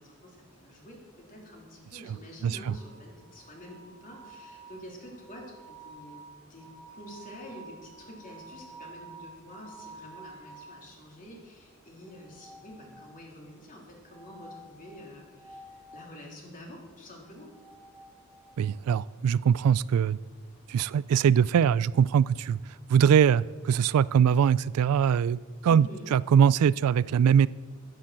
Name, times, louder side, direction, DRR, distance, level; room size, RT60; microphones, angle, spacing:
voice 1, 0.0-17.5 25.7-26.1, equal, 40° left, -1 dB, 3.1 m, -47 dB
voice 2, 2.4-2.7 18.6-20.2 20.7-22.6 22.9-27.5, right 8 dB, 80° right, 21 dB, 0.3 m, -22 dB
sound 1, 2.7-10.8 12.1-13.3 14.1-16.1 17.3-18.6, right 2 dB, 15° left, 3.5 m, -50 dB
10.5 x 10.0 x 7.5 m, 1.4 s
head